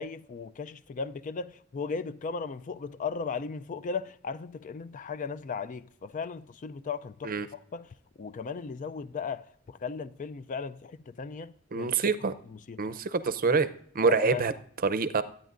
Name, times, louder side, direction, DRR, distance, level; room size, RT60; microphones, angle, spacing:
voice 1, 0.0-11.9 12.2-12.9 13.5-13.6 14.1-14.5, left 5 dB, 40° left, 0.4 m, -37 dB
voice 2, 11.7-12.3 12.8-13.7 13.9-14.5 14.8-15.2, right 4 dB, 45° right, 0.6 m, -26 dB
23.0 x 9.1 x 2.5 m
head